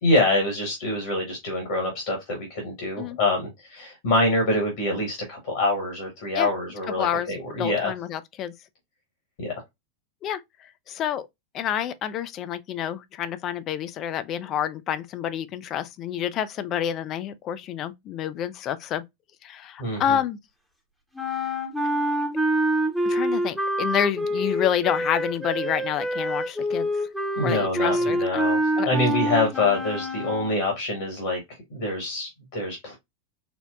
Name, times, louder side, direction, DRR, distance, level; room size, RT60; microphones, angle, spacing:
voice 1, 0.0-7.9 9.4-9.6 19.8-20.2 27.4-31.4 31.7-33.0, left 2 dB, 55° left, 1.2 m, -25 dB
voice 2, 7.0-8.5 10.2-11.3 11.5-19.0 19.4-20.4 23.0-27.1 27.4-28.4 28.8-28.9, left 10 dB, 35° left, 0.4 m, -28 dB
sound 1, 21.1-30.7, equal, ahead, 0.8 m, -26 dB
4.3 x 2.1 x 2.3 m
figure-of-eight pair, 90°, 0 cm